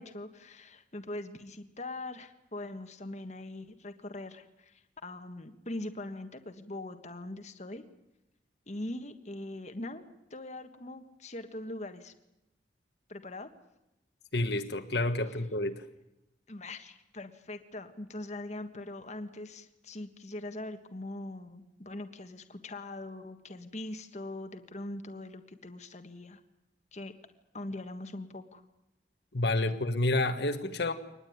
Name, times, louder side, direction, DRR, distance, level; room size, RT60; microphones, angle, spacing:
voice 1, 0.0-7.8 8.7-12.1 13.1-13.5 16.5-26.4 26.9-27.1 27.5-28.6, left 2 dB, 40° left, 1.6 m, -42 dB
voice 2, 14.3-15.8 29.3-30.9, left 2 dB, 60° left, 1.5 m, -29 dB
24.0 x 20.0 x 9.5 m
head